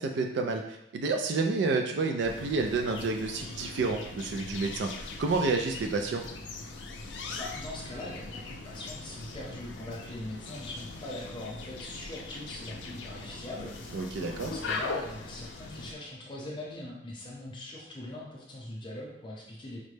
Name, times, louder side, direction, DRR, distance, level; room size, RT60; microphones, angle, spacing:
voice 1, 0.0-4.9 5.2-6.2 13.9-14.5, right 3 dB, 75° right, 3 dB, 0.3 m, -29 dB
sound 1, 2.2-15.9, left 3 dB, 85° left, 0.5 m, -41 dB
voice 2, 7.3-19.8, left 1 dB, 25° left, -3 dB, 0.7 m, -41 dB
5.1 x 2.1 x 3.2 m, 0.79 s
head